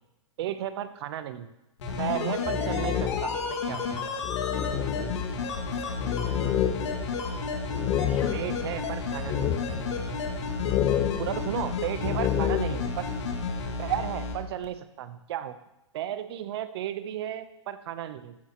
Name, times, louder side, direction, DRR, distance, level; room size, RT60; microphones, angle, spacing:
voice 1, 0.4-1.5 2.0-3.8 8.3-9.6 9.9-10.2 11.2-13.1 13.8-15.6 15.9-18.4, right 11 dB, 55° right, 12 dB, 1.0 m, -34 dB
sound 1, 1.8-14.3 14.6-14.7, left 4 dB, 70° left, 2.4 m, -32 dB
sound 2, 2.2-3.5 3.9-4.0 4.2-8.8 9.3-10.1 10.6-12.9, left 11 dB, 25° left, 0.4 m, -29 dB
voice 2, 5.1-7.2 7.9-8.4, left 4 dB, 85° left, 2 dB, 2.4 m, -50 dB
15.0 x 9.7 x 3.1 m, 0.90 s
hypercardioid pair, 125°, 16 cm